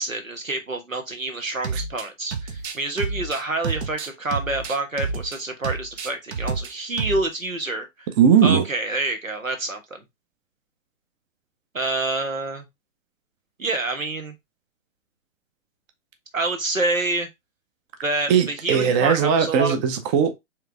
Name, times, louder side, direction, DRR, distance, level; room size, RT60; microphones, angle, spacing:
voice 1, 0.0-8.1 8.4-10.0 11.7-12.7 13.6-14.3 16.3-17.3 18.0-19.8, right 2 dB, 90° right, 1.4 m, -27 dB
sound 1, 1.6-2.0 2.3-5.4 5.6-6.7 7.0-7.2, right 4 dB, 55° right, 1.0 m, -29 dB
voice 2, 8.2-8.6 18.3-20.4, right 7 dB, 25° right, 0.6 m, -18 dB
4.7 x 3.3 x 3.4 m
figure-of-eight pair, 115°, 39 cm